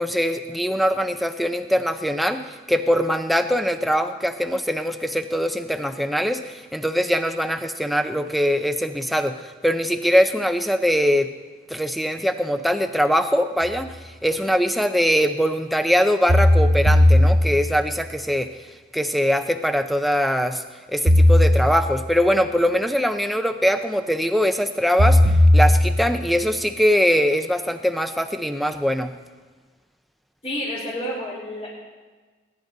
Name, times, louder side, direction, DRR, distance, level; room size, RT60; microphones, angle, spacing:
voice 1, 0.0-11.3 11.7-18.5 18.9-20.6 20.9-29.1, equal, ahead, 7 dB, 0.6 m, -22 dB
sound 1, 13.6-13.7 16.3-17.9 21.1-22.1 25.0-26.3, left 1 dB, 80° right, 1.3 m, -16 dB
voice 2, 30.4-31.7, equal, 35° left, -10 dB, 3.9 m, -29 dB
20.0 x 11.0 x 4.0 m, 1.4 s
head